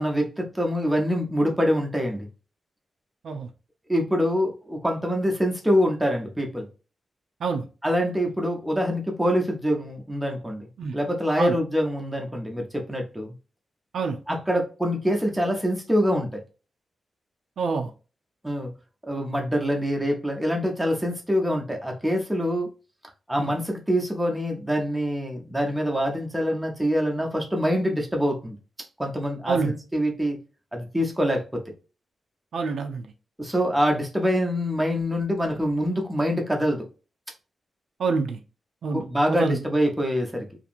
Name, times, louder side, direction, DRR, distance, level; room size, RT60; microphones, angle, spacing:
voice 1, 0.0-2.3 3.9-6.7 7.8-13.3 14.3-16.4 18.4-18.7 19.0-22.7 23.3-28.6 29.0-30.4 30.7-31.6 33.4-36.9 38.9-40.5, equal, 5° right, 0.6 m, -25 dB
voice 2, 17.6-17.9 23.4-23.5 29.5-29.7 32.5-33.0 38.0-38.4 38.8-39.6, right 4 dB, 65° right, 0.4 m, -26 dB
2.8 x 2.5 x 2.5 m
wide cardioid pair, 175°, 0 cm